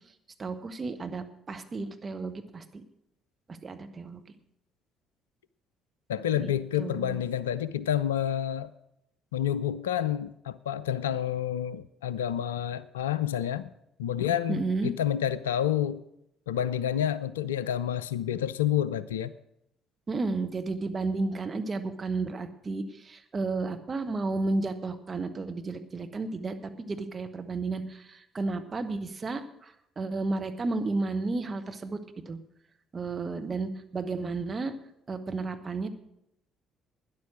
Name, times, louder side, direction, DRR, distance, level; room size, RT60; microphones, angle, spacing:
voice 1, 0.4-2.8 3.6-4.2 6.3-6.5 6.8-7.2 14.5-14.9 20.1-32.0 32.3-32.4 32.9-34.7 35.1-35.9, right 3 dB, 30° right, 7 dB, 1.3 m, -32 dB
voice 2, 6.1-8.7 9.3-13.7 14.0-16.0 16.5-19.3, left 10 dB, 75° left, 17 dB, 0.4 m, -29 dB
12.5 x 10.5 x 6.2 m, 0.78 s
figure-of-eight pair, 50°, 0 cm